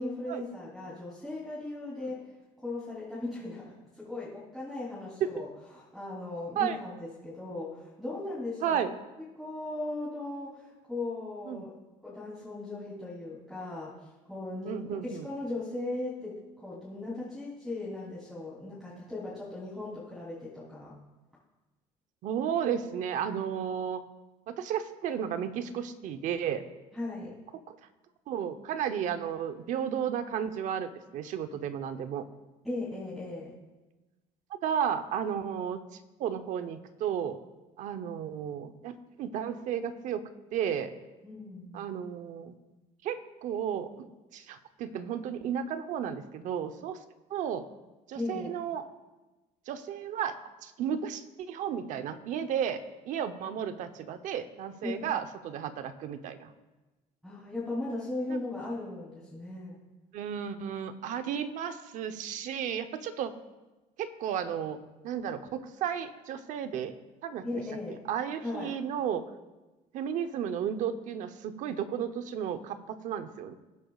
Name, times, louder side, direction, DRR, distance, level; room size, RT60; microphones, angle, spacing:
voice 1, 0.0-2.3 2.6-5.5 5.7-8.9 9.4-11.7 12.0-20.9 26.9-27.4 32.6-33.5 41.2-41.9 48.1-48.5 54.8-55.1 57.2-59.8 67.4-68.0 68.4-68.7, left 2 dB, ahead, -9 dB, 3.3 m, -38 dB
voice 2, 8.6-8.9 11.5-11.7 14.6-15.3 22.2-24.0 24.5-26.6 27.7-27.8 28.3-32.2 34.5-37.4 37.8-40.9 41.7-42.6 43.0-44.1 44.3-47.0 47.3-47.7 48.1-48.9 49.7-50.4 50.6-52.8 53.1-56.5 58.3-58.4 60.1-63.4 64.0-64.8 65.0-66.9 67.2-67.4 67.9-69.2 69.9-73.5, right 8 dB, 60° right, 10 dB, 0.8 m, -33 dB
19.5 x 10.0 x 2.4 m, 1.1 s
cardioid pair, 125°, 14 cm